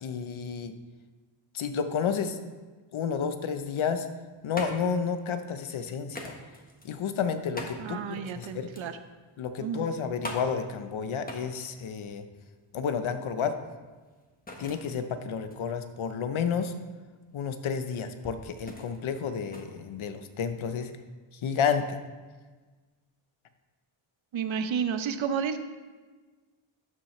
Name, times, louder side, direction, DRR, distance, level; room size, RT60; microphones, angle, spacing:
voice 1, 0.0-0.7 1.5-2.4 2.9-4.1 4.4-6.3 6.8-8.7 9.4-12.2 12.7-13.6 14.6-16.7 17.3-20.9 21.4-22.0, left 6 dB, 70° left, 9 dB, 0.9 m, -31 dB
sound 1, 4.0-20.6, left 1 dB, 20° left, 1.3 m, -45 dB
voice 2, 7.8-9.0 9.6-9.9 24.3-25.6, right 7 dB, 70° right, 10 dB, 0.8 m, -31 dB
12.0 x 7.4 x 3.2 m, 1.3 s
wide cardioid pair, 105°, 49 cm